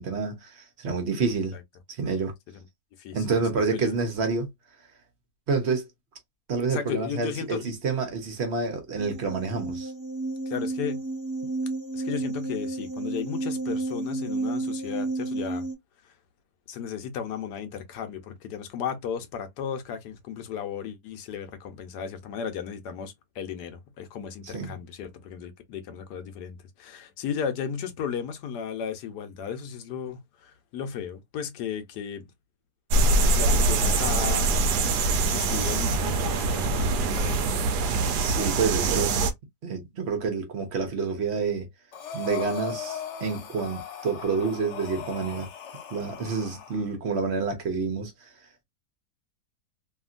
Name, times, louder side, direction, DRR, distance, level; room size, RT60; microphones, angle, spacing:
voice 1, 0.0-1.5 1.9-2.3 3.1-4.5 5.5-5.9 6.5-9.9 24.4-24.8 38.2-39.2 39.6-41.7 42.1-45.5 45.9-48.3, right 4 dB, 50° right, 0.9 m, -28 dB
voice 2, 3.0-3.4 3.7-3.9 6.7-7.7 10.5-11.0 11.9-15.7 16.0-16.1 16.7-32.3 33.3-34.6 35.3-37.5 39.2-39.3, left 8 dB, 80° left, 1.2 m, -35 dB
sound 1, 9.0-15.7, right 2 dB, 20° right, 0.5 m, -31 dB
sound 2, 32.9-39.3, right 3 dB, 80° right, 1.2 m, -23 dB
Breathing, 41.9-46.9, left 8 dB, 60° left, 0.8 m, -38 dB
2.8 x 2.7 x 2.4 m
omnidirectional pair, 1.8 m